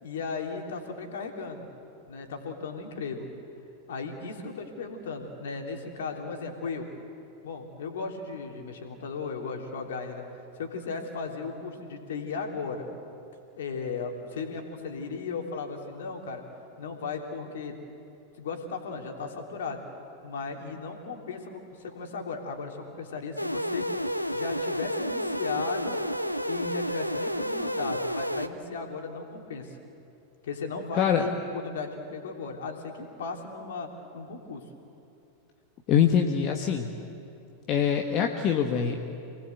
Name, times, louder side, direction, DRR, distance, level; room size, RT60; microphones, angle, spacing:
voice 1, 0.0-1.7 2.1-3.3 3.9-6.9 7.4-10.2 10.5-12.9 13.6-16.4 16.8-17.7 18.4-19.8 20.2-23.9 24.3-26.0 26.5-29.8 30.4-34.6, left 4 dB, 60° left, 2 dB, 3.3 m, -36 dB
sound 1, 23.4-28.5, equal, 90° left, 0.8 m, -30 dB
voice 2, 35.9-36.9 37.7-39.0, left 8 dB, 35° left, 3 dB, 1.5 m, -24 dB
28.0 x 19.5 x 8.1 m, 2.7 s
figure-of-eight pair, 90°, 0 cm